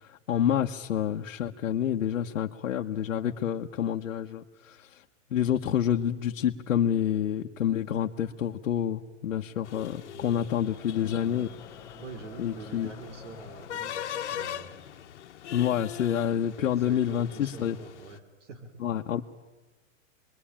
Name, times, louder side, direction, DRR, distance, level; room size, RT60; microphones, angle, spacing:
voice 1, 0.0-5.0 5.3-11.5 12.4-12.9 15.5-17.8 18.8-19.2, left 9 dB, 80° left, 1 dB, 1.3 m, -28 dB
sound 1, 9.7-18.2, left 10 dB, 60° left, 1.5 m, -41 dB
sound 2, 9.8-14.3, left 8 dB, 5° left, 1.2 m, -50 dB
voice 2, 10.1-10.6 12.0-14.7 16.6-18.8, right 4 dB, 65° right, 8 dB, 3.5 m, -46 dB
28.0 x 22.0 x 8.8 m, 1.2 s
hypercardioid pair, 180°, 39 cm